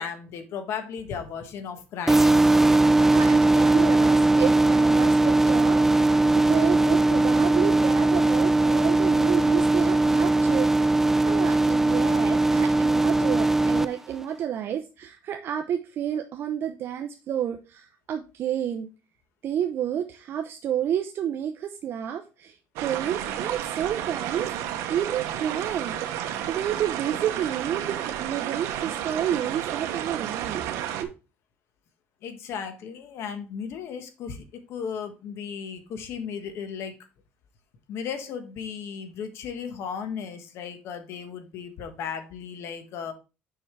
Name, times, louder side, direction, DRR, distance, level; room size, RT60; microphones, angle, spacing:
voice 1, 0.0-2.4 32.2-36.9 37.9-43.1, left 7 dB, 60° left, 7 dB, 1.4 m, -35 dB
sound 1, 2.1-13.8, right 2 dB, 5° right, 0.4 m, -20 dB
voice 2, 2.7-11.0 11.2-18.9 19.4-22.6 22.8-31.1, right 9 dB, 50° right, 5 dB, 0.7 m, -30 dB
sound 2, 22.8-31.0, right 11 dB, 80° right, 0.9 m, -31 dB
7.0 x 5.5 x 3.2 m, 0.30 s
cardioid pair, 125°, 5 cm